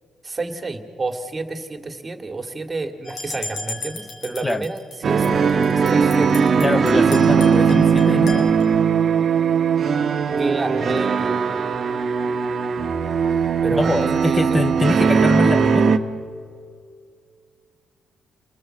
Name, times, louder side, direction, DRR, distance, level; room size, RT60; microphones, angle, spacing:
voice 1, 0.2-6.4 10.4-11.4 13.6-14.7, right 3 dB, 25° right, 6 dB, 2.3 m, -30 dB
sound 1, 3.0-5.0 5.2-8.6, left 3 dB, 55° left, 5.0 m, -34 dB
sound 2, 5.0-16.0, right 6 dB, 50° right, 1.4 m, -19 dB
voice 2, 6.6-8.6 13.8-16.0, left 2 dB, 15° left, 11 dB, 0.6 m, -23 dB
29.5 x 19.5 x 7.8 m, 2.2 s
cardioid pair, 90°, 0 cm